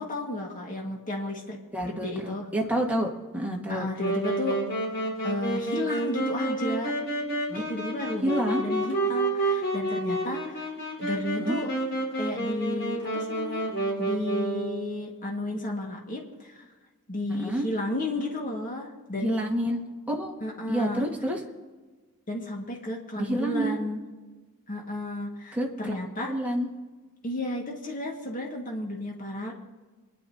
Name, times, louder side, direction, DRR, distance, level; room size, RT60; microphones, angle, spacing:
voice 1, 0.0-1.6 1.9-2.5 3.7-4.6 5.2-6.9 7.5-10.7 11.0-11.7 12.1-13.6 14.0-16.7 17.1-19.4 20.4-21.1 22.3-24.0 24.7-26.3 27.2-29.5, left 1 dB, 40° left, -1 dB, 1.8 m, -33 dB
voice 2, 1.7-3.9 7.5-7.7 8.2-8.6 11.4-11.6 17.3-17.7 19.1-19.8 20.1-20.3 20.7-21.4 23.2-23.8 25.5-25.9 26.3-26.7, right 1 dB, 5° right, -2 dB, 1.7 m, -28 dB
Wind instrument woodwind instrument, 4.0-14.9, right 2 dB, 55° left, 4.5 m, -29 dB
28.5 x 10.5 x 2.8 m, 1.3 s
head